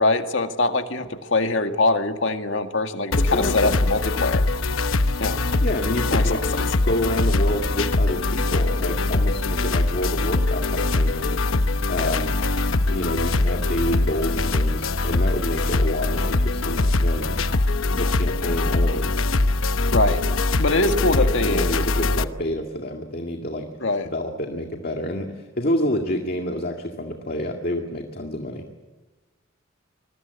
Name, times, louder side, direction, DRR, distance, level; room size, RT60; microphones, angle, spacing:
voice 1, 0.0-4.4 5.2-5.4 6.1-6.4 12.0-12.1 19.9-20.2 20.6-21.7 23.8-24.1, left 2 dB, 70° left, 6 dB, 1.9 m, -23 dB
sound 1, 3.1-22.2, left 2 dB, 90° left, 1.0 m, -22 dB
voice 2, 3.2-3.8 5.6-11.3 11.9-12.3 12.9-17.4 17.9-19.2 20.9-23.7 24.0-28.6, left 1 dB, 45° left, 3 dB, 2.0 m, -28 dB
25.5 x 22.0 x 8.3 m, 1.3 s
head